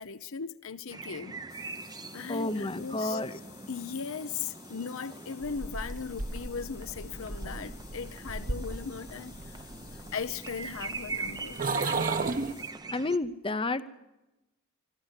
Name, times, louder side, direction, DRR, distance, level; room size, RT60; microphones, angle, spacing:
voice 1, 0.0-1.4 2.1-3.2 3.7-9.6 9.9-12.2, left 6 dB, 65° left, 0.8 m, -38 dB
sound 1, 0.9-13.2, right 3 dB, 20° right, 0.7 m, -43 dB
sound 2, 1.5-12.7, left 11 dB, 85° left, 6.8 m, -54 dB
voice 2, 2.3-3.4 12.9-13.8, left 2 dB, 25° left, 0.8 m, -30 dB
sound 3, 5.4-12.5, right 3 dB, 40° right, 1.1 m, -35 dB
25.5 x 13.0 x 8.2 m
head